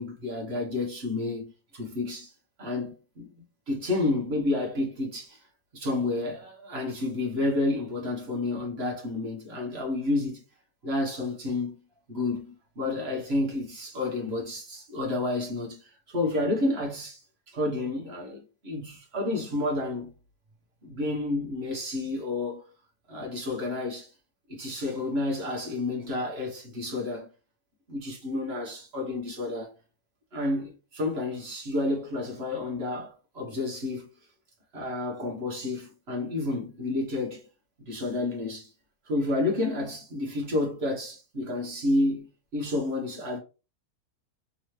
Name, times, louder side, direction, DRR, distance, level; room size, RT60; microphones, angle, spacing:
voice 1, 0.0-2.3 2.6-3.3 3.7-5.4 5.7-10.4 10.8-11.8 12.1-20.1 20.8-22.6 23.1-24.1 24.5-27.3 27.9-29.7 30.3-34.1 34.7-37.4 37.9-38.7 39.0-43.4, left 2 dB, 40° right, 1.4 m, -30 dB
3.7 x 3.0 x 3.1 m
omnidirectional pair, 1.7 m